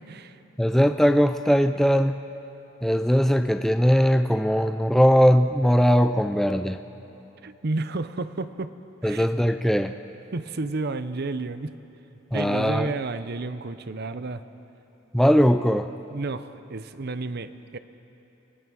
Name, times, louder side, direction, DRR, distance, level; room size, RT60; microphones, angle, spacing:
voice 1, 0.0-0.4 7.4-8.7 9.0-9.3 10.3-11.7 12.3-14.4 16.1-17.8, right 3 dB, 55° right, 12 dB, 0.7 m, -31 dB
voice 2, 0.6-2.2 2.8-6.8 9.0-9.9 12.3-12.9 15.1-15.9, equal, ahead, 8 dB, 0.4 m, -20 dB
29.0 x 19.0 x 6.3 m, 3.0 s
head